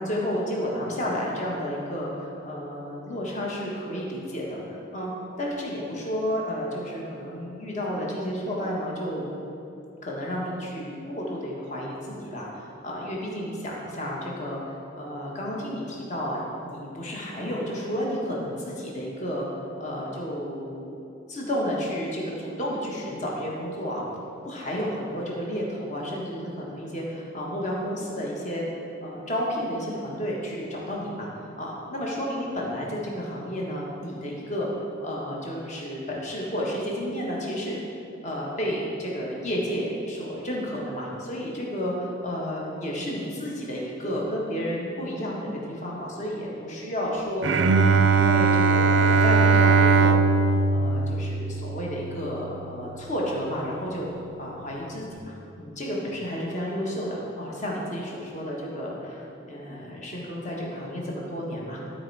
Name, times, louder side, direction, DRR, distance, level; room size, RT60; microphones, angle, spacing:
voice 1, 0.0-5.1 5.4-9.3 10.0-19.4 19.8-20.9 21.3-24.0 24.4-37.8 38.2-50.3 50.7-54.1 54.4-61.8, equal, 40° left, -3 dB, 1.4 m, -31 dB
Bowed string instrument, 47.4-52.7, right 4 dB, 70° right, 0.4 m, -20 dB
12.0 x 4.5 x 4.7 m, 2.8 s
head